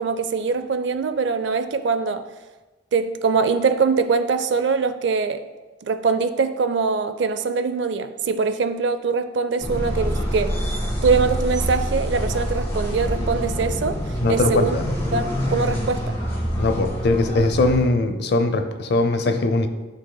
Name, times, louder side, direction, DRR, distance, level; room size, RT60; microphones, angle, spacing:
voice 1, 0.0-2.2 2.9-5.4 5.8-10.5 11.0-14.0 14.3-14.8 15.1-16.1, right 4 dB, 65° right, 11 dB, 0.4 m, -22 dB
sound 1, 9.6-17.9, equal, 15° left, 1.8 m, -26 dB
voice 2, 14.2-14.8 16.6-19.7, left 2 dB, 60° left, 9 dB, 0.6 m, -20 dB
11.5 x 5.7 x 2.2 m, 1.2 s
head